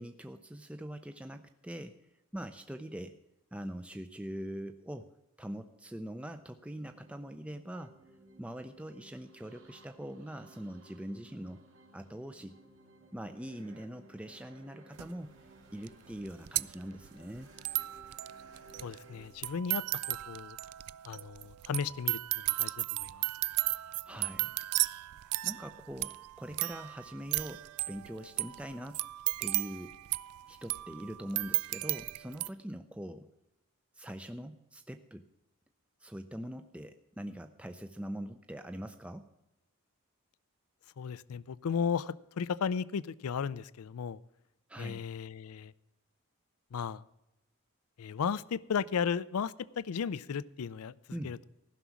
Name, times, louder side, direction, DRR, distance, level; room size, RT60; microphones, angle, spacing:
voice 1, 0.0-2.0 2.3-3.2 3.5-8.0 8.4-11.6 11.9-12.5 13.1-15.3 15.7-17.5 24.0-24.6 25.4-29.0 29.4-29.9 30.5-33.3 33.9-35.2 36.0-39.3 44.7-45.0 51.1-51.4, equal, 5° right, 8 dB, 0.4 m, -43 dB
sound 1, 6.0-19.3, right 2 dB, 55° right, 2.2 m, -59 dB
sound 2, 15.0-15.1 15.9-32.5, right 19 dB, 90° right, 0.3 m, -35 dB
voice 2, 18.8-20.6 21.1-23.3 41.0-44.2 44.8-45.7 46.7-47.0 48.0-51.0 51.2-51.5, left 6 dB, 80° left, 19 dB, 0.4 m, -35 dB
15.0 x 6.1 x 7.0 m, 0.91 s
head